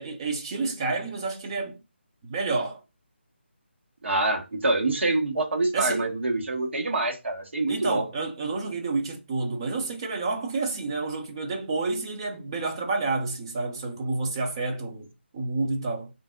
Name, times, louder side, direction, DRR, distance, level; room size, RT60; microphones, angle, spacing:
voice 1, 0.0-1.8 2.2-2.8 5.7-6.1 7.7-15.1 15.3-16.1, right 3 dB, 25° right, 0.6 m, -29 dB
voice 2, 4.0-8.0, right 2 dB, 75° right, 1.2 m, -26 dB
3.4 x 2.6 x 3.6 m
figure-of-eight pair, 165°, 6 cm